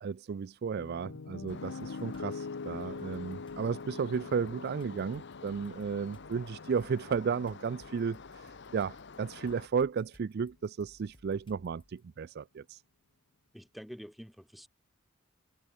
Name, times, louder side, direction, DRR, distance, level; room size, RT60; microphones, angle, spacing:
voice 1, 0.0-12.8, right 6 dB, 50° right, 0.4 m, -34 dB
Piano, 0.8-8.9, left 4 dB, 90° left, 0.7 m, -44 dB
sound 1, 1.5-9.7, left 4 dB, 60° left, 0.9 m, -49 dB
sound 2, 1.5-2.3 2.8-12.0, equal, 25° left, 6.6 m, -62 dB
voice 2, 13.5-14.7, equal, ahead, 2.6 m, -47 dB
head